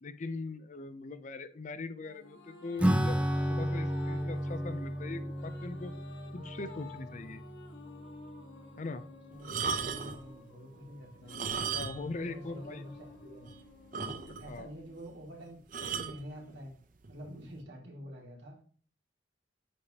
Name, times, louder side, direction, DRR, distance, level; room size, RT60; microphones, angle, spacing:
voice 1, 0.0-3.2 3.5-5.9 6.3-7.4 8.8-9.0 11.7-12.8 14.4-14.7, left 3 dB, 45° left, 12 dB, 0.6 m, -41 dB
sound 1, 2.0-15.6, left 3 dB, 90° left, 1.2 m, -52 dB
Acoustic guitar / Strum, 2.8-8.7, equal, 5° right, 0.6 m, -33 dB
voice 2, 9.3-11.4 12.0-13.6 14.0-15.6 15.9-16.7 17.1-18.6, equal, 85° right, -1 dB, 2.4 m, -47 dB
sound 2, 9.4-10.2 11.2-12.2 12.5-12.6 13.1-13.2 13.5-13.6 13.9-14.6 15.7-16.2 17.0-17.3, right 5 dB, 50° right, 0.7 m, -35 dB
8.6 x 5.0 x 2.9 m, 0.44 s
head